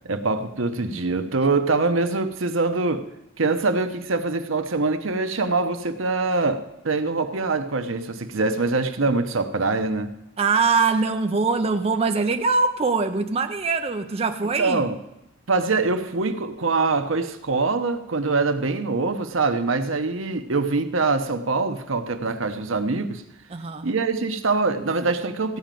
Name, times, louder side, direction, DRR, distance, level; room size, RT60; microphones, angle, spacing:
voice 1, 0.0-3.1 3.4-10.1 14.6-15.0 15.5-23.2 23.8-25.6, right 3 dB, 75° right, 0.9 m, -24 dB
voice 2, 10.4-14.8 23.5-23.9, right 4 dB, 30° right, 0.5 m, -22 dB
15.0 x 5.1 x 9.1 m
head